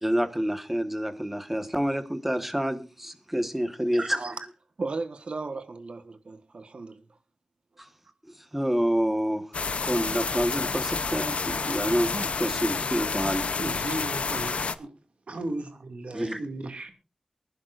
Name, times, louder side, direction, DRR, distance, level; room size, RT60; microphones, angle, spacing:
voice 1, 0.0-4.2 7.8-7.9 8.3-13.5 16.1-16.4, equal, 10° right, 1.4 m, -28 dB
voice 2, 4.0-4.3 4.8-7.0, right 3 dB, 65° right, 1.4 m, -35 dB
sound 1, 9.5-14.7, left 4 dB, 80° left, 0.7 m, -29 dB
voice 3, 13.6-14.9 15.3-16.9, right 2 dB, 80° right, 2.3 m, -35 dB
24.0 x 11.0 x 2.5 m
wide cardioid pair, 100°, 2 cm